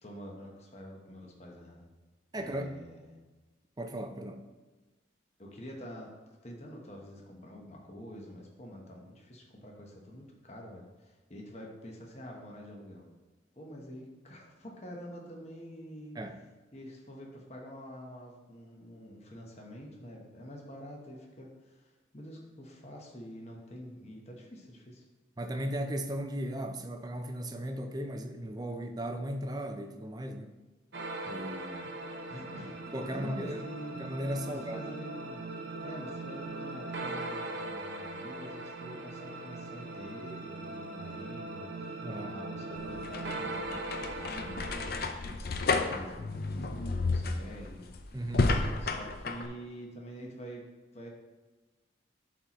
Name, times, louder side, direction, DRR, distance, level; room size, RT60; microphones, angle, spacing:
voice 1, 0.0-1.9 2.3-3.1 5.4-6.1 6.4-13.1 13.6-16.2 16.7-25.0 32.3-33.9 34.4-35.4 35.8-47.9 48.8-50.7 50.9-51.1, equal, 35° left, 0 dB, 1.1 m, -47 dB
voice 2, 2.3-2.8 3.8-4.4 16.2-16.4 25.4-30.5 31.3-32.0 32.9-33.6 33.9-34.9 42.0-42.4 48.1-48.5, right 1 dB, 20° right, 6 dB, 0.5 m, -36 dB
sound 1, 30.9-45.1, right 2 dB, 65° right, 0.8 m, -40 dB
sound 2, 42.8-49.5, left 3 dB, 50° left, 0.5 m, -32 dB
11.5 x 4.3 x 3.1 m, 1.2 s
head